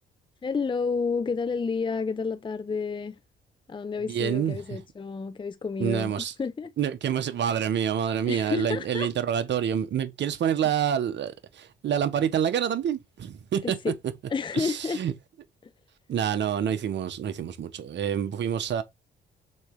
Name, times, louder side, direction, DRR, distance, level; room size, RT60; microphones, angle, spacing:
voice 1, 0.4-3.2 3.7-6.7 8.3-9.1 13.6-14.0 14.3-15.0, left 5 dB, 25° left, 0.6 m, -30 dB
voice 2, 4.1-4.6 5.8-6.3 6.8-13.9 14.5-15.1 16.1-18.8, right 9 dB, 65° right, 1.5 m, -27 dB
6.3 x 4.4 x 4.9 m
cardioid pair, 90°, 20 cm